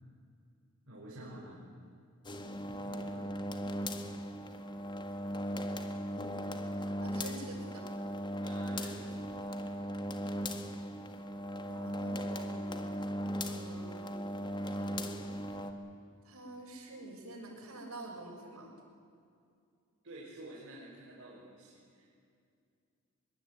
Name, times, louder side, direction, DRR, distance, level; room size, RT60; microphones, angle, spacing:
voice 1, 0.9-1.6 2.7-3.4 8.4-9.3 15.5-15.7 20.0-22.1, right 1 dB, 60° right, -5 dB, 5.8 m, -50 dB
sound 1, 2.3-15.7, equal, 20° left, 1.7 m, -38 dB
voice 2, 7.0-7.8 11.7-12.9 13.5-15.1 16.2-18.7, right 2 dB, 90° right, 1 dB, 6.5 m, -48 dB
23.5 x 22.5 x 9.7 m, 2.4 s
head